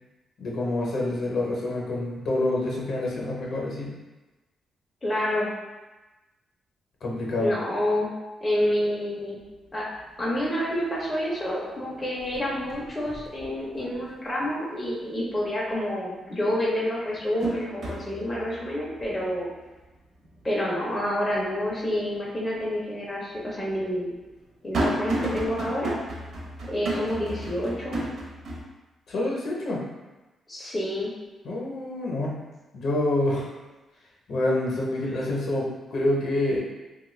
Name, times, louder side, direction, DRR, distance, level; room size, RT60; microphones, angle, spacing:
voice 1, 0.4-3.9 7.0-7.5 29.1-29.8 31.4-32.4 32.7-33.5 34.3-36.6, left 1 dB, 55° left, -3 dB, 0.7 m, -27 dB
voice 2, 5.0-5.5 7.4-8.1 8.4-9.4 9.7-9.9 10.2-19.5 20.4-24.1 24.6-26.1 26.7-28.0 30.5-31.1, left 1 dB, 15° left, -6 dB, 0.5 m, -28 dB
sound 1, 9.4-9.5 9.9-10.5 10.8-11.6 11.9-14.2 14.6-14.7 16.1-16.2 16.7-21.9 22.3-22.4 23.3-28.6, right 1 dB, 45° right, 0.7 m, -34 dB
3.1 x 2.2 x 3.1 m, 1.1 s
wide cardioid pair, 170°, 0 cm